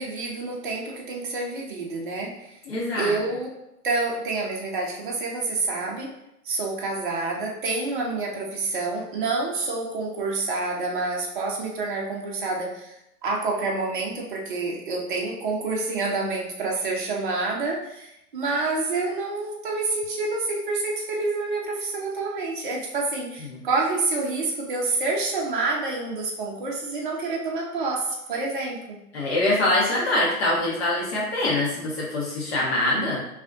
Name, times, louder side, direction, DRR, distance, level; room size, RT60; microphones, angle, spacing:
voice 1, 0.0-2.5 2.9-3.6 3.8-6.1 6.4-13.0 13.2-29.0, right 3 dB, 35° right, -2 dB, 0.6 m, -28 dB
voice 2, 2.7-3.1 23.4-23.6 29.1-33.2, left 1 dB, 40° left, -4 dB, 1.3 m, -24 dB
3.9 x 2.8 x 2.6 m, 0.85 s
figure-of-eight pair, 130°, 47 cm